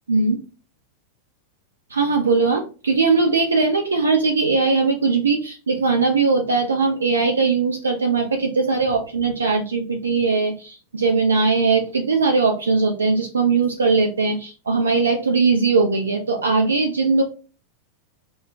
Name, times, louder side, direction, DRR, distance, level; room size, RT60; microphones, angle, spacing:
voice 1, 1.9-17.2, right 4 dB, 75° right, 3 dB, 0.4 m, -20 dB
2.2 x 2.1 x 3.7 m, 0.35 s
figure-of-eight pair, 90°, 0 cm